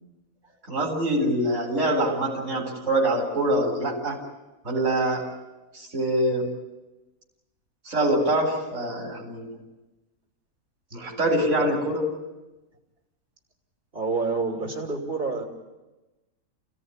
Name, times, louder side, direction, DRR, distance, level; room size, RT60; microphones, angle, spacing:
voice 1, 0.7-4.2 4.6-5.3 5.7-6.5 7.8-9.6 10.9-12.0, right 1 dB, 55° right, -2 dB, 4.3 m, -24 dB
voice 2, 13.9-15.4, right 4 dB, 40° right, 1 dB, 3.1 m, -28 dB
28.5 x 17.0 x 9.7 m, 1.1 s
omnidirectional pair, 1.5 m